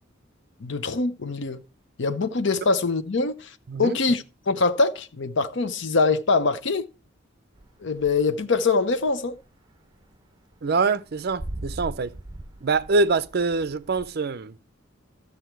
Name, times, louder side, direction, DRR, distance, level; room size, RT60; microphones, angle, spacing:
voice 1, 0.6-1.6 2.0-6.9 7.8-9.4, left 3 dB, 65° left, 0.7 m, -24 dB
sound 1, 7.5-8.6 8.9-14.1, right 1 dB, 20° right, 1.1 m, -40 dB
voice 2, 10.6-12.1 12.6-14.5, right 3 dB, 50° right, 0.5 m, -24 dB
13.0 x 7.0 x 4.5 m
head